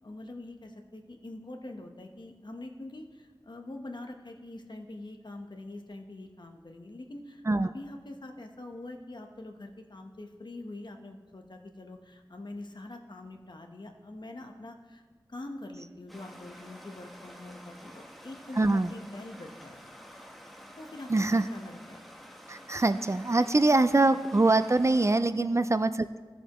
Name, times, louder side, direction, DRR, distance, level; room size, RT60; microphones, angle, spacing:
voice 1, 0.0-15.0 15.3-19.8 20.8-22.0 23.9-24.0 25.4-25.6, left 2 dB, 65° left, 3 dB, 1.1 m, -44 dB
Stream, 16.1-25.2, equal, ahead, 1.1 m, -49 dB
voice 2, 18.6-18.9 21.1-21.5 22.5-26.2, right 2 dB, 35° right, 12 dB, 0.4 m, -24 dB
17.0 x 7.0 x 3.1 m, 1.4 s
wide cardioid pair, 55°, 8 cm